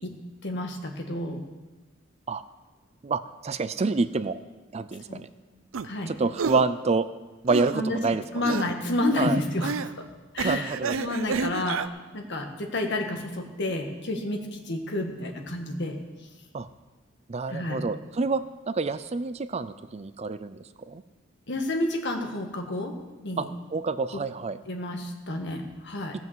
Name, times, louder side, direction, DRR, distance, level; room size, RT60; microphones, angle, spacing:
voice 1, 0.4-1.4 5.1-5.2 5.8-6.1 7.7-8.0 8.3-9.9 10.3-11.8 12.1-15.9 17.5-17.8 21.5-22.9 23.2-23.4 24.1-24.2 24.7-26.1, left 1 dB, 60° left, 3 dB, 1.7 m, -30 dB
voice 2, 3.0-4.4 4.7-5.3 6.1-7.1 7.4-8.6 9.2-9.4 10.4-11.0 16.5-16.7 17.3-20.6 20.9-21.0 23.4-23.5 23.7-24.6, right 4 dB, 35° right, 13 dB, 0.4 m, -28 dB
sound 1, 5.7-5.9 6.4-6.7 7.5-7.8 8.4-8.7 9.6-9.9 10.4-11.9, right 5 dB, 85° right, 0.5 m, -30 dB
17.5 x 6.0 x 7.4 m, 1.2 s
head